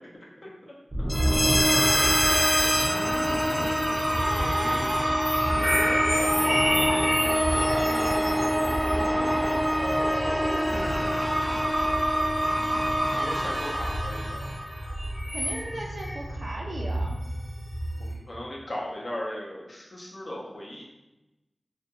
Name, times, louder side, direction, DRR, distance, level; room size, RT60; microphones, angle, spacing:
voice 1, 0.4-1.1 4.0-5.9 13.2-14.5 18.0-20.8, left 1 dB, 55° left, -3 dB, 0.6 m, -38 dB
sound 1, 0.9-15.3, equal, 25° right, 0.5 m, -26 dB
sound 2, 1.1-18.1, equal, 25° left, 0.8 m, -29 dB
voice 2, 2.0-3.5 7.0-8.1 8.5-10.5 12.5-12.7 15.3-17.2, right 1 dB, 80° right, -1 dB, 0.4 m, -41 dB
2.4 x 2.2 x 2.8 m, 0.99 s
wide cardioid pair, 70°, 0 cm